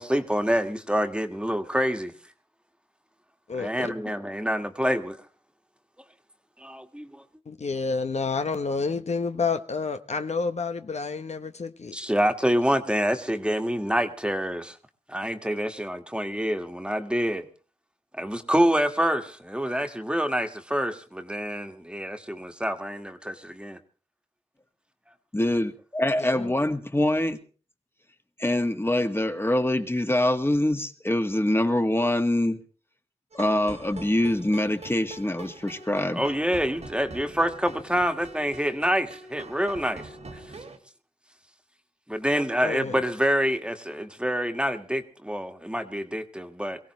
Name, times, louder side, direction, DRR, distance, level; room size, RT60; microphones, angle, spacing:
voice 1, 0.0-2.1 3.6-5.2 6.6-7.2 11.9-14.8 15.1-17.4 18.1-23.8 36.1-40.1 42.1-46.8, equal, 10° right, 1.7 m, -27 dB
voice 2, 3.5-3.9 7.5-11.9 26.2-26.5 42.6-43.0, left 4 dB, 70° left, 1.0 m, -29 dB
voice 3, 25.3-27.4 28.4-32.6 33.3-36.2, left 1 dB, 20° left, 1.7 m, -24 dB
sound 1, 33.3-40.8, right 2 dB, 70° right, 2.3 m, -43 dB
23.0 x 16.5 x 3.2 m
wide cardioid pair, 55°, 12 cm